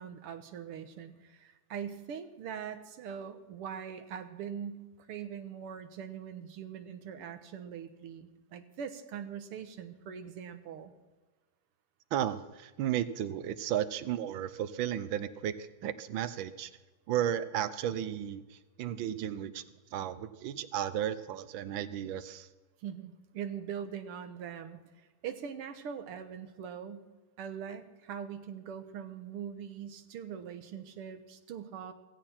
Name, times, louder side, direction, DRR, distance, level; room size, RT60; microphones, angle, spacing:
voice 1, 0.0-10.9 22.8-24.8 25.2-27.1 27.4-31.9, right 8 dB, 85° right, 9 dB, 2.0 m, -42 dB
voice 2, 12.1-16.7 17.1-19.6 19.9-22.5, right 10 dB, 70° right, 14 dB, 1.4 m, -34 dB
16.0 x 16.0 x 4.4 m, 1.2 s
omnidirectional pair, 2.4 m